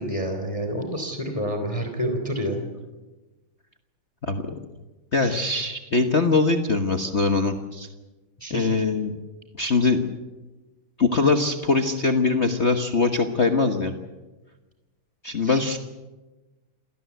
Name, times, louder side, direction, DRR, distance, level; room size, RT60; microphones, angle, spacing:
voice 1, 0.0-2.7 5.2-5.3 8.4-8.8 15.4-15.6, equal, 15° left, 6 dB, 2.9 m, -29 dB
voice 2, 4.2-4.5 5.1-7.9 8.5-9.1 9.5-10.0 11.0-13.9 15.2-15.8, left 4 dB, 35° left, 6 dB, 1.4 m, -22 dB
27.5 x 18.0 x 8.2 m, 1.2 s
omnidirectional pair, 2.4 m